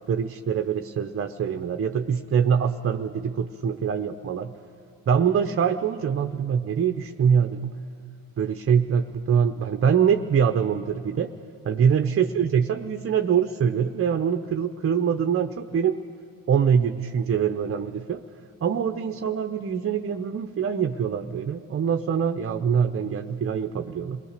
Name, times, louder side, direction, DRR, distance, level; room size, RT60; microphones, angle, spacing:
voice 1, 0.1-4.5 5.1-7.7 8.4-11.3 11.6-16.0 16.5-18.2 18.6-24.2, right 7 dB, 30° right, 7 dB, 0.8 m, -24 dB
27.0 x 19.0 x 6.6 m, 2.5 s
hypercardioid pair, 70°, 44 cm